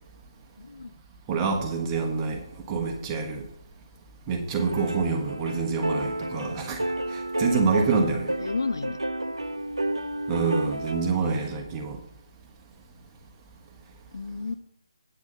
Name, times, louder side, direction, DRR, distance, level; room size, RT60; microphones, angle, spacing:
voice 1, 0.6-0.9 4.9-5.1 8.4-9.0 11.1-11.5 14.1-14.5, left 4 dB, 60° left, 13 dB, 0.5 m, -33 dB
voice 2, 1.3-3.4 4.3-8.3 10.3-12.0, right 4 dB, 15° right, 2 dB, 1.4 m, -27 dB
sound 1, 4.6-11.2, right 1 dB, 85° right, 0.7 m, -31 dB
8.9 x 6.2 x 6.7 m, 0.75 s
figure-of-eight pair, 150°, 3 cm